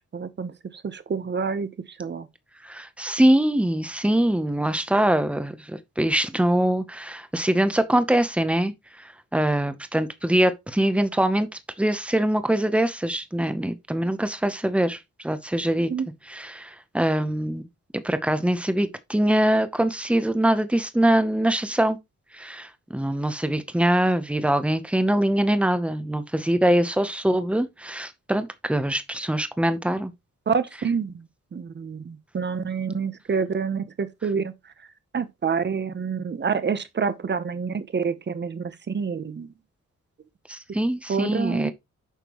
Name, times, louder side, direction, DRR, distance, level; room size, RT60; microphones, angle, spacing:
voice 1, 0.1-1.7 2.0-2.3 15.9-16.1 30.5-31.2 31.5-34.5 35.1-39.5 41.1-41.7, right 6 dB, 35° right, 0.9 m, -27 dB
voice 2, 2.6-11.5 11.8-15.9 16.3-17.7 18.0-22.0 22.3-30.1 40.5-41.7, right 1 dB, 5° right, 0.8 m, -23 dB
9.1 x 6.6 x 3.0 m
wide cardioid pair, 180°, 30 cm